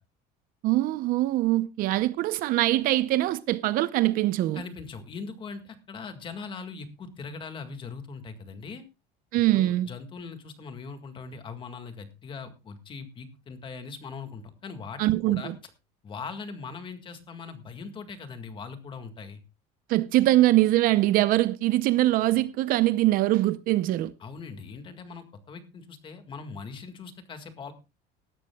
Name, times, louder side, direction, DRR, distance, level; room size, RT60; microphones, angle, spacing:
voice 1, 0.6-4.6 9.3-9.9 15.0-15.5 19.9-24.1, right 16 dB, 50° right, 0.7 m, -23 dB
voice 2, 4.5-8.8 9.5-15.5 16.0-19.4 24.2-27.7, left 5 dB, 25° left, 1.9 m, -40 dB
18.5 x 12.5 x 2.3 m
cardioid pair, 165°, 19 cm